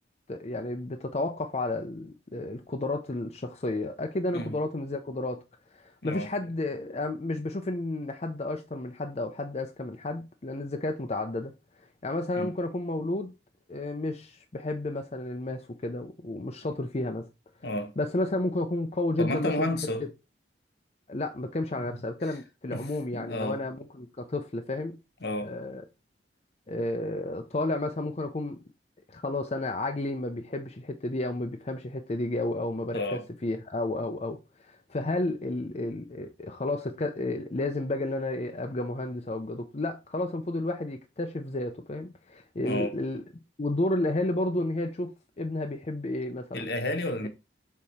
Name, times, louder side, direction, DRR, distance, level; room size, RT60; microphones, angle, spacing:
voice 1, 0.3-5.4 5.7-11.5 12.0-13.3 13.7-17.3 18.0-19.7 21.1-25.0 25.4-25.8 26.7-28.6 29.1-43.2 43.6-46.7, left 2 dB, 35° left, 0.6 m, -32 dB
voice 2, 17.6-17.9 19.2-20.1 21.8-22.0 22.7-22.8 23.1-23.6 25.2-25.5 32.9-33.2 42.6-42.9 46.5-47.3, left 1 dB, 60° left, 1.1 m, -31 dB
6.6 x 4.2 x 4.2 m
head